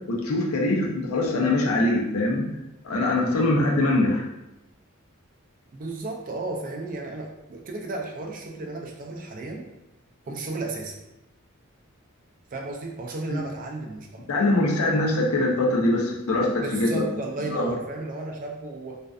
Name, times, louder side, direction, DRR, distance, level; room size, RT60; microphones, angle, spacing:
voice 1, 0.1-2.5 2.8-4.3 13.3-13.4 14.3-17.0 17.5-17.7, left 2 dB, 85° left, -2 dB, 0.6 m, -23 dB
voice 2, 5.7-9.7 10.2-11.0 12.5-14.2 16.6-19.0, right 2 dB, 40° right, 1 dB, 0.4 m, -34 dB
2.5 x 2.2 x 2.3 m, 0.94 s
head